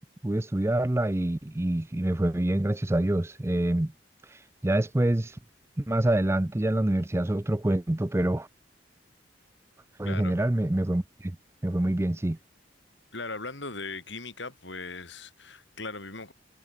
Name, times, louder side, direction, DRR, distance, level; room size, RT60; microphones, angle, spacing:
voice 1, 0.2-3.9 4.6-5.4 5.8-8.5 10.0-11.4 11.6-12.4, right 1 dB, 15° right, 0.5 m, -26 dB
voice 2, 10.0-10.4 13.1-16.3, left 3 dB, 70° left, 6.9 m, -38 dB
head